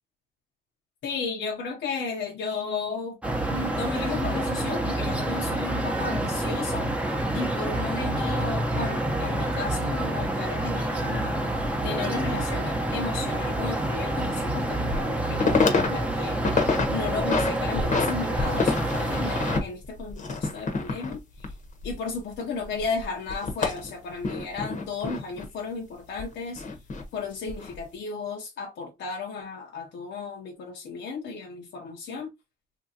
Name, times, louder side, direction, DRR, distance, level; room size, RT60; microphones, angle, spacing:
voice 1, 1.0-3.2 3.5-11.4 11.8-21.5 21.8-26.6 27.1-32.3, left 4 dB, 65° left, 0.7 m, -34 dB
sound 1, 3.2-19.6, right 1 dB, 5° right, 0.7 m, -28 dB
sound 2, 11.2-11.3 13.5-13.6 14.1-14.2 14.7-15.1 15.3-15.9 16.2-16.9 17.2-18.1 18.4-22.4 22.6-25.5 26.2-27.0 27.5-27.8, left 4 dB, 40° left, 0.9 m, -27 dB
2.9 x 2.6 x 2.7 m
cardioid pair, 90°, 20 cm